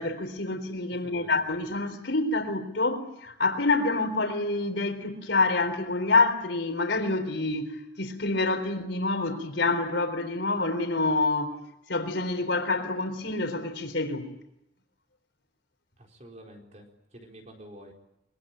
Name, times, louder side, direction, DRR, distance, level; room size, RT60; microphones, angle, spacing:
voice 1, 0.0-11.6 11.9-14.3, left 3 dB, 80° left, 3.9 m, -27 dB
voice 2, 1.0-1.3 16.0-16.9 17.1-17.9, right 1 dB, 40° right, 4.3 m, -48 dB
24.5 x 23.0 x 8.9 m
head